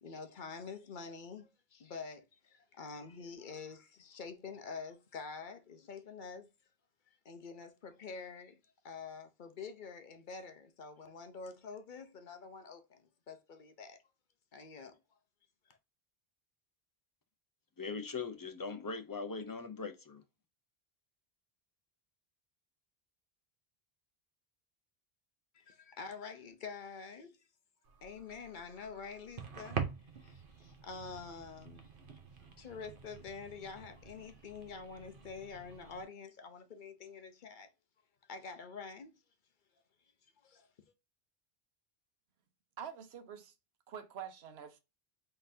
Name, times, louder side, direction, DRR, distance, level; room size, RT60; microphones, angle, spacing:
voice 1, 0.0-6.5 7.2-8.6 8.8-14.0 14.5-15.0 15.7-15.8 25.5-27.5 28.0-32.2 32.6-37.7 38.3-39.2 40.4-40.7, left 5 dB, 55° left, 0.9 m, -47 dB
voice 2, 17.8-20.2, left 4 dB, 25° left, 0.5 m, -40 dB
sound 1, 27.8-36.0, right 6 dB, 60° right, 1.0 m, -46 dB
voice 3, 42.8-43.5 43.9-44.8, right 8 dB, 90° right, 1.0 m, -46 dB
4.0 x 3.8 x 2.6 m
omnidirectional pair, 1.0 m